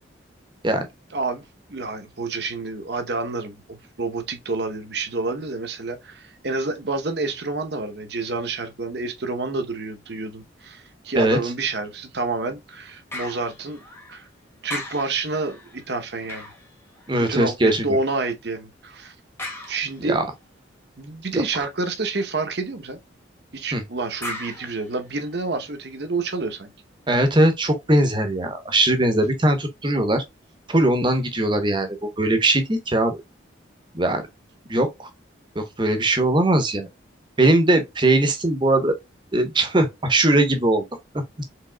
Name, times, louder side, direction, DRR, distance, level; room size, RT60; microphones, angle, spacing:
voice 1, 1.1-1.4 1.7-13.8 14.1-14.3 14.6-16.5 17.2-19.1 19.7-20.2 21.0-23.0 23.5-26.7, right 3 dB, 55° right, 0.8 m, -28 dB
sound 1, 13.1-14.3 14.7-17.5 19.4-20.3 24.2-25.7 26.2-26.3, left 1 dB, 10° left, 1.1 m, -38 dB
voice 2, 17.1-18.0 20.0-20.3 21.3-21.4 23.7-23.8 27.1-30.2 30.7-33.2 33.9-34.3 34.7-35.1 35.6-36.9 37.4-38.9 39.3-40.8, right 1 dB, 25° right, 0.8 m, -20 dB
4.8 x 3.5 x 2.2 m
head